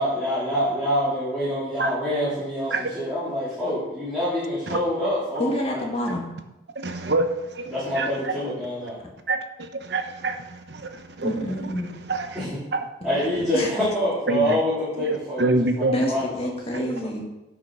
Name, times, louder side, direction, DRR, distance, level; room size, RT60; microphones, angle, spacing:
voice 1, 0.0-5.9 7.7-9.0 12.4-12.5 13.0-16.5 16.8-16.9, equal, 5° right, -13 dB, 3.5 m, -26 dB
voice 2, 5.4-6.3 11.2-11.9 13.0-13.7 15.9-17.2, equal, 30° left, 0 dB, 1.8 m, -28 dB
voice 3, 6.8-8.1 9.3-11.4 12.1-12.4 14.3-14.6 15.0-15.9, right 2 dB, 60° right, 7 dB, 0.9 m, -26 dB
10.5 x 6.2 x 5.5 m, 0.95 s
head